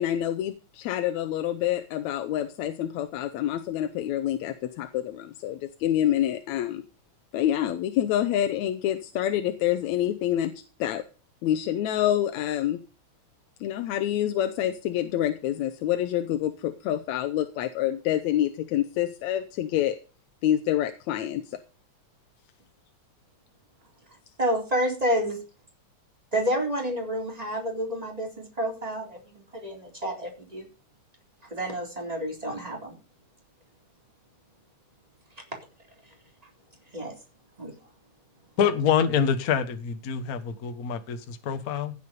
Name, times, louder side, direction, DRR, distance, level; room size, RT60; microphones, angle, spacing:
voice 1, 0.0-6.8 7.3-10.5 10.8-11.0 11.4-12.8 13.6-20.0 20.4-21.6, left 11 dB, 75° left, 8 dB, 2.0 m, -27 dB
voice 2, 24.4-25.4 26.3-30.7 31.5-32.9 36.9-37.1 37.6-37.7, equal, 10° right, 0 dB, 3.9 m, -29 dB
voice 3, 38.6-41.9, left 7 dB, 60° left, 8 dB, 0.9 m, -26 dB
16.0 x 7.0 x 5.3 m, 0.34 s
omnidirectional pair, 3.5 m